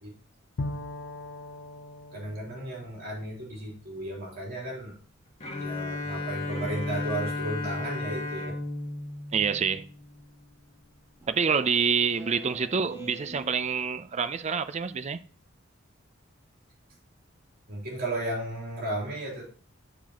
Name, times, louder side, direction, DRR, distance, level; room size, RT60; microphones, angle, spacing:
Bowed string instrument, 0.6-4.3, left 2 dB, 75° left, 0.6 m, -40 dB
voice 1, 2.1-4.9 5.6-8.6 17.7-19.4, right 1 dB, 50° right, 3.1 m, -34 dB
Bowed string instrument 2, 5.4-10.3, left 2 dB, 35° left, 1.8 m, -34 dB
voice 2, 9.3-9.9 11.3-15.2, right 6 dB, 35° right, 0.4 m, -27 dB
Speech synthesizer, 11.2-14.2, right 3 dB, 15° right, 1.2 m, -46 dB
11.0 x 4.7 x 2.9 m
head